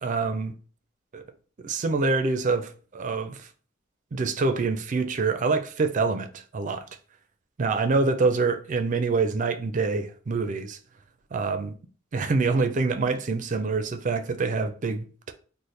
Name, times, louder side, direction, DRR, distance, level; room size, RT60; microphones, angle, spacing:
voice 1, 0.0-0.6 1.1-1.2 1.6-3.5 4.1-6.9 7.6-10.8 11.3-11.7 12.1-15.3, right 4 dB, 40° right, 0.4 m, -26 dB
3.2 x 2.1 x 4.1 m
head